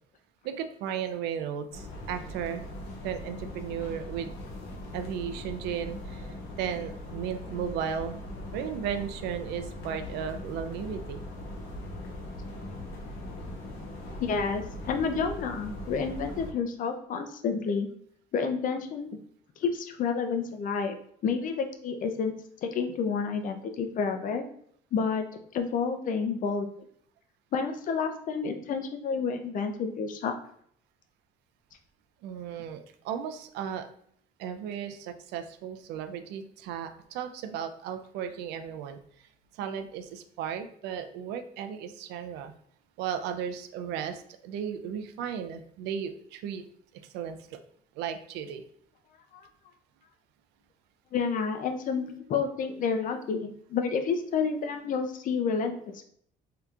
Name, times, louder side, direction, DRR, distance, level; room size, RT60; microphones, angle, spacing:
voice 1, 0.4-2.6 3.0-4.3 4.9-8.2 8.5-11.2 32.2-33.9 34.4-39.0 39.5-42.5 43.0-46.6 46.9-47.4 48.0-48.6, right 8 dB, 85° right, 8 dB, 0.4 m, -35 dB
sound 1, 1.7-16.5, left 1 dB, 80° left, 0.9 m, -40 dB
voice 2, 14.2-17.9 18.3-19.1 19.6-21.0 21.2-22.3 22.6-24.4 24.9-25.2 25.5-26.7 27.5-30.3 49.3-49.4 51.1-56.0, left 5 dB, 50° left, 6 dB, 0.5 m, -29 dB
3.4 x 2.8 x 2.4 m, 0.65 s
cardioid pair, 110°, 17 cm